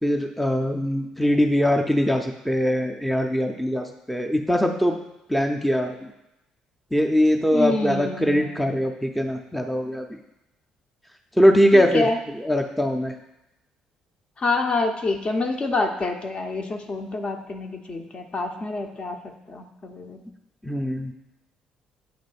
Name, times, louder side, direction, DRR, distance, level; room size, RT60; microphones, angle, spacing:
voice 1, 0.0-5.0 5.3-6.1 6.9-10.0 11.4-12.1 12.4-13.1 20.6-21.1, equal, ahead, 3 dB, 0.6 m, -22 dB
voice 2, 7.5-8.7 11.7-12.2 14.4-19.2 19.5-20.2, left 3 dB, 35° left, 4 dB, 0.8 m, -27 dB
8.8 x 3.0 x 4.2 m, 0.92 s
figure-of-eight pair, 45°, 3 cm